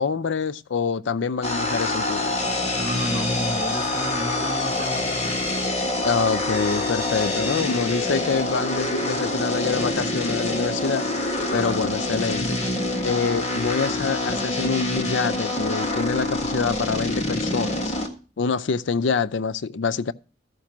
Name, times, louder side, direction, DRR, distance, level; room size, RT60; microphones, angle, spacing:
voice 1, 0.0-2.4 6.0-11.0 11.5-12.6 13.0-17.9 18.4-20.1, left 5 dB, 80° left, 0.5 m, -26 dB
sound 1, 1.4-18.1, left 1 dB, 35° left, 1.7 m, -26 dB
voice 2, 2.8-5.0, equal, 25° right, 0.8 m, -30 dB
13.5 x 5.2 x 5.9 m
head